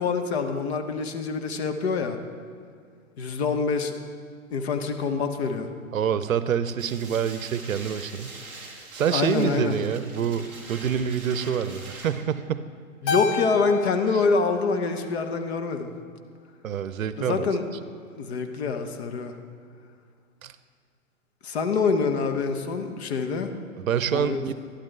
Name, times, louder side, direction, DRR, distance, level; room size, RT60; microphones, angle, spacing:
voice 1, 0.0-2.2 3.2-4.0 4.5-5.7 9.1-9.8 13.0-15.9 17.2-17.6 18.2-19.3 21.4-23.6 24.1-24.4, left 4 dB, 50° left, 6 dB, 1.0 m, -26 dB
voice 2, 5.9-8.3 8.9-12.7 14.1-14.2 16.6-17.5 20.4-20.5 23.8-24.5, right 8 dB, 70° right, 13 dB, 0.6 m, -27 dB
sound 1, 6.8-12.1, right 3 dB, 5° right, 0.3 m, -43 dB
Keyboard (musical), 13.1-15.6, left 6 dB, 30° left, 0.7 m, -32 dB
12.0 x 11.5 x 3.3 m, 2.2 s
figure-of-eight pair, 120°, 42 cm